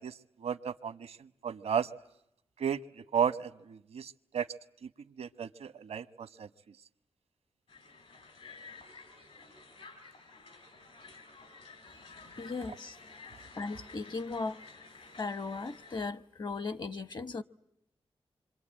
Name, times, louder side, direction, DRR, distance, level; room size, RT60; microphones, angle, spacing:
voice 1, 0.0-1.9 2.6-4.5 5.2-6.5, right 8 dB, 90° right, 1.0 m, -34 dB
Crowd, 7.7-16.0, left 4 dB, 75° left, 4.8 m, -52 dB
voice 2, 12.4-13.0 13.6-14.6 15.2-17.4, left 3 dB, 45° left, 1.0 m, -37 dB
26.5 x 24.5 x 8.8 m
wide cardioid pair, 90°, 10 cm